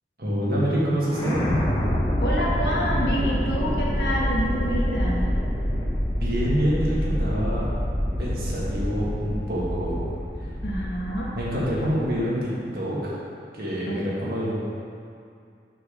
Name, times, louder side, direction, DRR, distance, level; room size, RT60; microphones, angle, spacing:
voice 1, 0.2-1.5 6.1-7.7 8.2-10.1 11.3-13.2 13.5-14.5, equal, 55° right, -7 dB, 1.8 m, -26 dB
sound 1, 1.1-12.2, equal, 25° left, 1.0 m, -26 dB
voice 2, 2.2-5.3 10.6-11.3 13.9-14.1, equal, 70° left, -4 dB, 1.4 m, -28 dB
6.7 x 6.6 x 4.0 m, 2.4 s
head